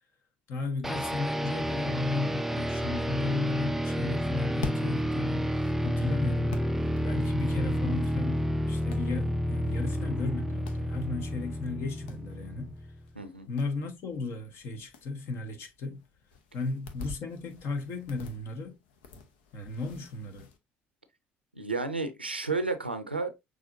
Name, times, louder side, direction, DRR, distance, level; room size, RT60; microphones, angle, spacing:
voice 1, 0.5-5.5 5.8-6.6 7.0-12.8 13.5-16.0 16.5-18.8 19.5-20.5, left 3 dB, 50° left, 1.2 m, -34 dB
sound 1, 0.8-13.0, equal, 5° right, 0.4 m, -30 dB
sound 2, 4.2-20.6, left 3 dB, 65° left, 0.9 m, -48 dB
voice 2, 13.1-13.5 21.5-23.4, right 3 dB, 90° right, 0.6 m, -32 dB
6.2 x 3.3 x 2.5 m
figure-of-eight pair, 55°, 5 cm